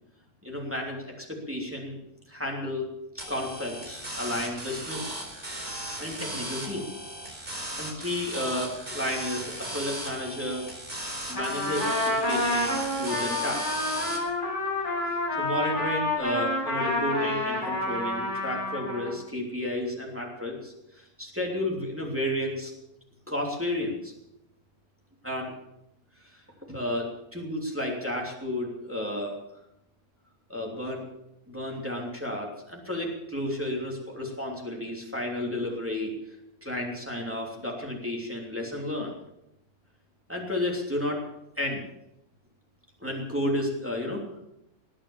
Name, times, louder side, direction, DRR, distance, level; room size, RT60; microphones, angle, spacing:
voice 1, 0.4-2.0 2.3-5.1 6.0-6.9 7.4-10.7 11.3-13.7 15.0-22.7 23.3-24.1 25.2-25.5 26.3-26.4 26.7-29.4 30.5-31.0 31.5-36.1 36.6-39.1 40.3-41.2 41.6-41.8 43.0-44.2, left 1 dB, 10° right, -1 dB, 3.0 m, -32 dB
sound 1, 3.2-14.2, right 1 dB, 35° right, 4.7 m, -37 dB
Trumpet, 11.3-19.2, left 1 dB, 30° left, 5.7 m, -29 dB
20.5 x 8.7 x 7.2 m, 0.85 s
omnidirectional pair, 1.6 m